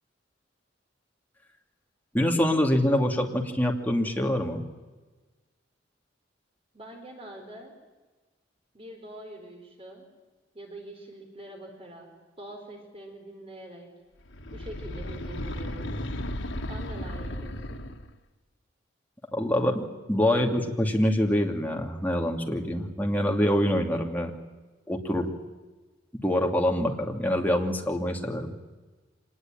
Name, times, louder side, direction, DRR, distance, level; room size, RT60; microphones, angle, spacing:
voice 1, 2.1-4.6 19.3-24.3 24.9-25.3 26.2-28.5, left 1 dB, 10° left, 2 dB, 2.6 m, -25 dB
voice 2, 6.7-7.7 8.7-10.1 10.5-12.1 12.4-13.9 14.5-16.0 16.7-17.8, right 1 dB, 30° right, 2 dB, 4.7 m, -44 dB
sound 1, 14.3-18.2, left 1 dB, 85° left, 1.7 m, -35 dB
25.5 x 20.0 x 9.1 m, 1.2 s
head